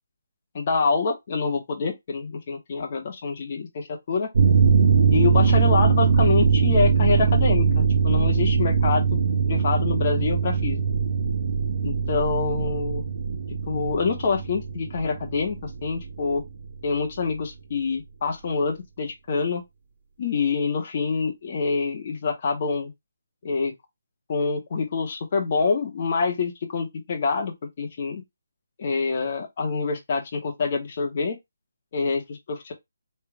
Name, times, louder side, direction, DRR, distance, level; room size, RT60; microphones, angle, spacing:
voice 1, 0.5-4.3 5.1-9.2 9.5-10.8 11.8-13.0 13.7-16.4 16.8-19.6 20.2-22.9 23.4-23.7 24.3-28.2 28.8-31.4 31.9-32.7, left 4 dB, 30° left, 1.1 m, -26 dB
sound 1, 4.3-16.5 16.8-16.9, right 5 dB, 50° right, 1.0 m, -21 dB
3.4 x 3.2 x 4.7 m
hypercardioid pair, 175°, 0 cm